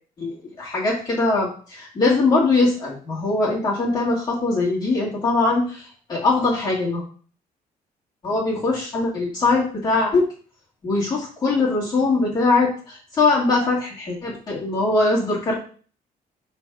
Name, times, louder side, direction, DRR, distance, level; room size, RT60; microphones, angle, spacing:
voice 1, 0.2-7.0 8.2-10.2 10.8-15.5, left 3 dB, 25° left, -6 dB, 1.8 m, -21 dB
6.0 x 3.6 x 5.9 m, 0.42 s
cardioid pair, 175°, 15 cm